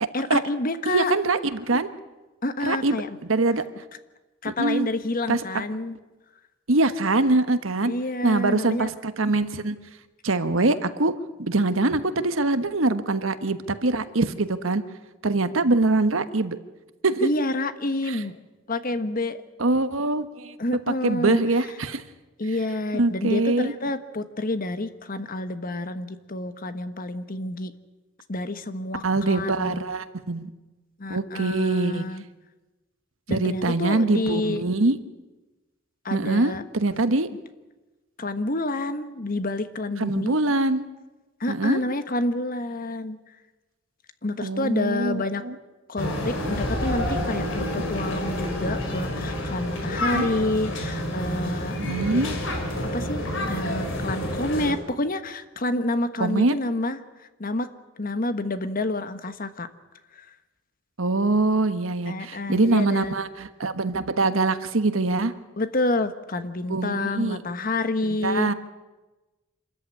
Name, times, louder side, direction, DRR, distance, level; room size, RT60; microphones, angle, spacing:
voice 1, 0.1-1.1 2.4-3.2 4.4-6.0 7.8-8.9 17.2-18.4 18.7-19.4 20.6-21.4 22.4-27.7 28.3-29.8 31.0-32.2 33.3-34.6 36.0-36.6 38.2-40.5 41.4-43.2 44.2-45.4 45.9-52.3 52.9-57.0 57.4-57.7 58.0-59.7 60.2-60.3 62.1-63.2 65.6-68.5, left 2 dB, 45° left, 11 dB, 1.3 m, -28 dB
voice 2, 0.9-1.9 2.6-3.6 4.5-4.9 5.3-5.6 6.7-7.9 8.2-9.7 10.2-11.1 11.4-14.8 15.2-16.6 17.0-17.3 18.1-18.2 19.6-20.5 21.0-22.0 22.9-23.7 29.0-30.5 31.1-32.0 33.3-35.0 36.1-37.3 40.0-40.8 41.5-41.8 44.4-45.5 47.6-48.0 50.0-50.3 51.8-52.4 56.2-56.6 61.0-65.3 66.7-67.4 68.0-68.5, right 2 dB, 90° right, 11 dB, 1.3 m, -23 dB
sound 1, 46.0-54.7, left 1 dB, 70° left, 4.4 m, -29 dB
26.0 x 14.0 x 9.8 m, 1.1 s
head